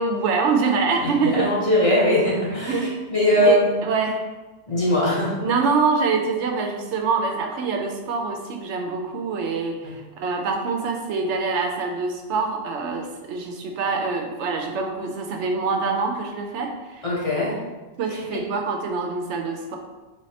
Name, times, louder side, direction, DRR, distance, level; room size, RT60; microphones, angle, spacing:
voice 1, 0.0-1.5 2.6-2.9 3.4-4.2 5.4-17.0 18.0-19.8, right 4 dB, 90° right, 3 dB, 0.9 m, -25 dB
voice 2, 1.2-3.8 4.7-5.3 9.8-9.9 17.0-17.6 18.1-18.2, left 1 dB, 35° left, -6 dB, 0.7 m, -21 dB
3.4 x 3.1 x 2.7 m, 1.2 s
omnidirectional pair, 1.1 m